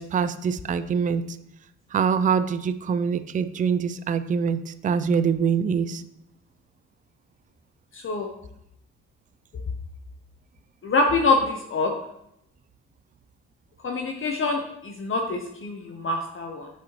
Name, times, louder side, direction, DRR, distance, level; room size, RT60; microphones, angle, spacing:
voice 1, 0.0-1.4 1.9-6.0, right 6 dB, 25° right, 12 dB, 0.4 m, -24 dB
voice 2, 7.9-8.3 10.8-11.9 13.8-16.7, left 3 dB, 45° left, 3 dB, 0.9 m, -25 dB
8.2 x 6.2 x 3.1 m, 0.79 s
cardioid pair, 90°, 30 cm